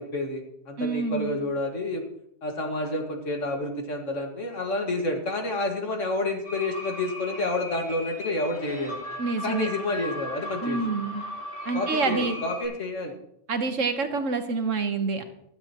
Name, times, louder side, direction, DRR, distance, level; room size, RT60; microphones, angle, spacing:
voice 1, 0.0-2.1 2.4-9.0 9.4-10.8 11.7-13.2, left 2 dB, 85° left, 3 dB, 2.2 m, -29 dB
voice 2, 0.8-1.4 9.2-9.7 10.6-11.2 11.6-12.4 13.5-15.2, right 4 dB, 85° right, 7 dB, 1.6 m, -27 dB
sound 1, 6.4-12.7, left 1 dB, 60° left, 4.7 m, -37 dB
16.5 x 12.0 x 3.0 m, 0.76 s
omnidirectional pair, 1.3 m